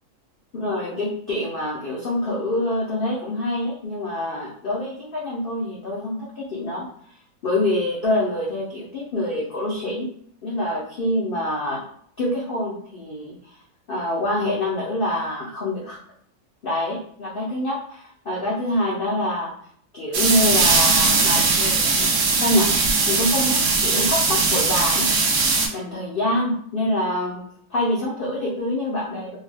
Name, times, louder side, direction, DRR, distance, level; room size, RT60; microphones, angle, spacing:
voice 1, 0.5-6.9 7.4-10.1 10.4-11.8 12.2-13.4 13.9-16.0 16.6-19.5 19.9-22.1 22.4-22.7 23.1-25.1 25.7-27.4 27.7-29.4, left 1 dB, 85° left, -4 dB, 0.4 m, -25 dB
sound 1, 20.1-25.7, right 4 dB, 75° right, 0.6 m, -19 dB
2.7 x 2.1 x 3.2 m, 0.62 s
omnidirectional pair, 1.7 m